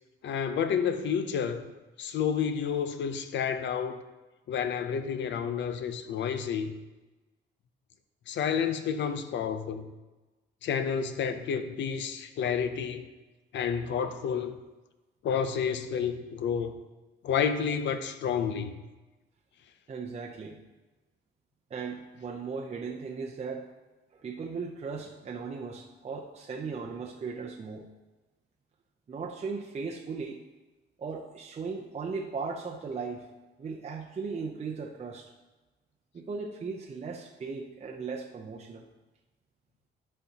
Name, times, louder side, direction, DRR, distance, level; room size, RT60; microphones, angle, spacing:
voice 1, 0.2-1.7 2.0-4.0 4.5-6.7 8.3-9.9 10.6-13.1 13.5-14.6 15.2-16.7 17.2-18.7, left 7 dB, 65° left, 10 dB, 0.6 m, -30 dB
voice 2, 19.9-20.6 21.7-23.7 24.1-27.9 29.1-30.4 31.0-33.3 33.6-35.3 36.1-38.9, right 5 dB, 35° right, 0 dB, 0.6 m, -37 dB
11.5 x 4.4 x 2.8 m, 1.1 s
cardioid pair, 90°, 20 cm